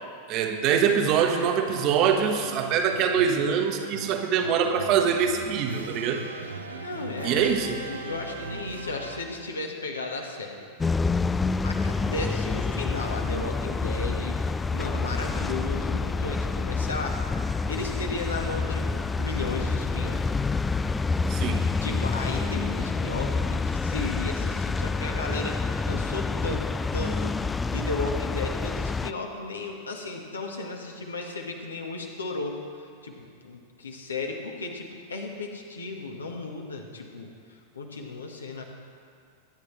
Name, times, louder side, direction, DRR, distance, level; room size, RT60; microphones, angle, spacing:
voice 1, 0.3-6.2 7.2-7.7 21.3-21.6, right 7 dB, 40° right, 4 dB, 1.3 m, -24 dB
sound 1, 1.7-9.5, right 3 dB, 75° right, 1.0 m, -40 dB
voice 2, 6.8-10.7 11.6-17.2 17.7-20.4 21.8-27.4 27.7-38.6, left 3 dB, 75° left, 1 dB, 1.6 m, -35 dB
sound 2, 10.8-29.1, left 4 dB, 15° left, 0.3 m, -28 dB
23.5 x 9.7 x 3.3 m, 2.2 s
figure-of-eight pair, 90°, 0 cm